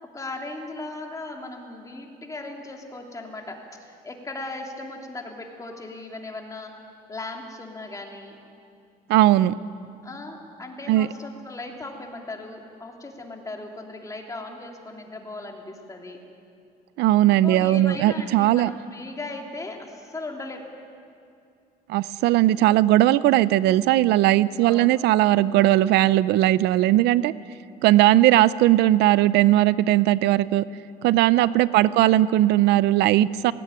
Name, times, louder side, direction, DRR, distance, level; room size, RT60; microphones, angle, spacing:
voice 1, 0.0-6.7 7.1-8.4 10.0-16.2 17.4-20.7 24.6-25.0 27.0-27.1 31.6-32.0, left 2 dB, 20° left, 1 dB, 3.0 m, -37 dB
voice 2, 9.1-9.6 10.9-11.1 17.0-18.7 21.9-27.3 27.8-30.6 31.0-33.5, right 14 dB, 85° right, 17 dB, 0.5 m, -18 dB
18.0 x 17.0 x 9.6 m, 2.6 s
cardioid pair, 110°, 17 cm